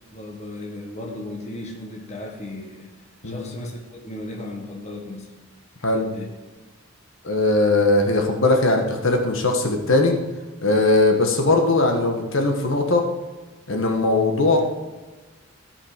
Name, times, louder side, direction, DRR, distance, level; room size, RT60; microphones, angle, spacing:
voice 1, 0.1-2.9 3.2-5.3 6.0-6.3, left 1 dB, 30° left, 1 dB, 1.3 m, -35 dB
voice 2, 7.2-10.1 10.6-13.0 13.7-14.6, left 2 dB, 65° left, 3 dB, 1.3 m, -19 dB
14.0 x 5.7 x 5.0 m, 1.2 s
head